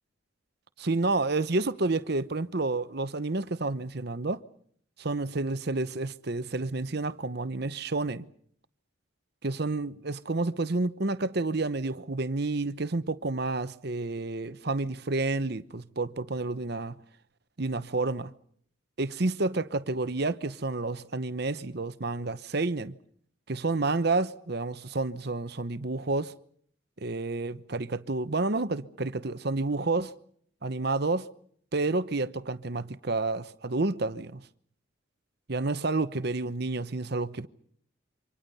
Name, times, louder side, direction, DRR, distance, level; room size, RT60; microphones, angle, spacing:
voice 1, 0.8-4.4 5.0-8.3 9.4-17.0 17.6-18.3 19.0-22.9 23.5-26.3 27.0-30.1 30.6-31.3 31.7-34.4 35.5-37.5, right 3 dB, 50° right, 0.9 m, -30 dB
28.0 x 25.5 x 5.5 m
head